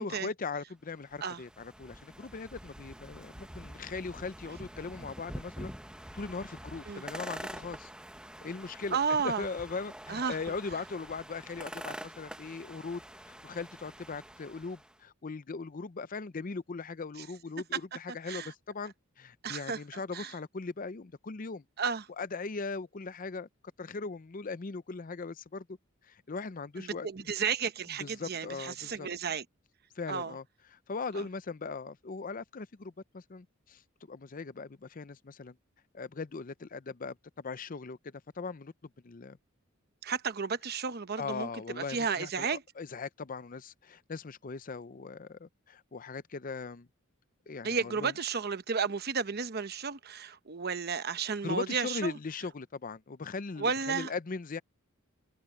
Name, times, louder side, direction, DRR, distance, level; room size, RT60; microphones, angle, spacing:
voice 1, 0.0-5.7 6.1-7.9 8.4-13.0 13.4-21.6 22.2-23.5 23.8-25.7 26.1-27.1 28.0-29.1 30.0-30.4 30.7-33.8 34.1-35.6 35.9-38.7 39.0-39.4 41.2-46.9 47.5-48.1 51.4-54.6, left 4 dB, 40° left, 0.6 m, -39 dB
sound 1, 0.9-15.0, right 1 dB, 5° right, 0.9 m, -46 dB
voice 2, 8.9-9.5 10.1-10.4 18.3-18.5 19.4-19.8 20.1-20.3 21.8-22.0 27.0-29.4 30.1-30.3 31.2-31.3 40.0-41.5 41.8-42.6 47.6-52.2 53.6-54.1, right 5 dB, 50° right, 0.9 m, -32 dB
head